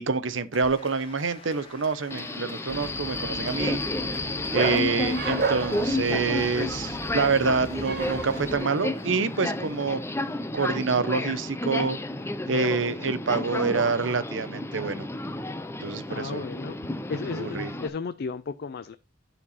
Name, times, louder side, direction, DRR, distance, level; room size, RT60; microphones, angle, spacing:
voice 1, 0.0-3.8 4.5-10.0 10.5-12.0 12.5-15.1 15.8-16.4 17.1-17.7, right 4 dB, 90° right, 0.8 m, -27 dB
Applause, 0.5-10.6, left 3 dB, 30° left, 1.8 m, -49 dB
Subway metro underground, 2.1-17.9, left 2 dB, 15° left, 0.6 m, -31 dB
Bark, 2.7-8.5, right 4 dB, 55° right, 1.4 m, -33 dB
voice 2, 16.1-16.8 17.1-19.0, left 4 dB, 55° left, 0.4 m, -34 dB
9.9 x 4.5 x 4.1 m
head